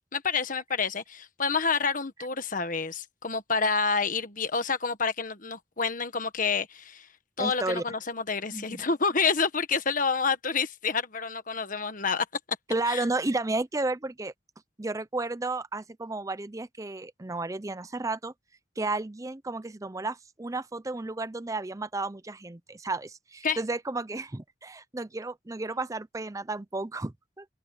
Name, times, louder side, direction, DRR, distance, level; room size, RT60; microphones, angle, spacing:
voice 1, 0.1-7.1 7.4-12.2 12.9-13.0 23.4-23.6, left 5 dB, 45° left, 1.5 m, -28 dB
voice 2, 7.4-7.8 8.5-8.8 12.7-14.3 14.8-18.3 18.8-27.4, right 2 dB, 15° right, 0.5 m, -32 dB
open air
head